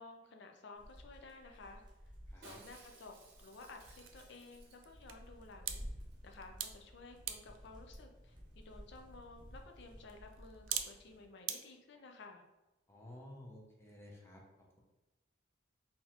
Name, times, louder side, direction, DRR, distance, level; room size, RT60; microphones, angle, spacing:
voice 1, 0.0-1.8 2.4-5.8 6.2-12.5, left 3 dB, 60° left, 4 dB, 0.5 m, -54 dB
sound 1, 0.7-11.3, equal, 25° right, 0.7 m, -54 dB
sound 2, 2.2-11.6, right 10 dB, 85° right, 0.3 m, -48 dB
voice 2, 2.3-2.6 12.9-14.8, left 1 dB, 15° left, -1 dB, 0.6 m, -54 dB
Shatter, 2.4-5.2 5.5-5.6 5.7-6.1 6.4-6.5, right 3 dB, 55° right, 0.8 m, -60 dB
3.9 x 2.7 x 2.9 m, 1.0 s
head